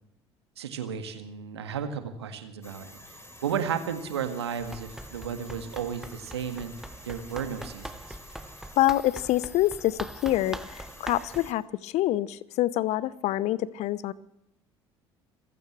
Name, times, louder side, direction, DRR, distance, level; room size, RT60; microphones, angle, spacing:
voice 1, 0.6-3.2 3.4-6.7 7.1-8.2, right 7 dB, 75° right, 8 dB, 1.8 m, -33 dB
sound 1, 2.6-11.5, left 1 dB, 20° left, 3.8 m, -49 dB
Run, 4.6-11.5, right 1 dB, 5° right, 1.1 m, -42 dB
voice 2, 8.8-14.1, left 15 dB, 55° left, 20 dB, 0.8 m, -26 dB
27.5 x 15.5 x 3.2 m, 0.77 s
figure-of-eight pair, 55°, 14 cm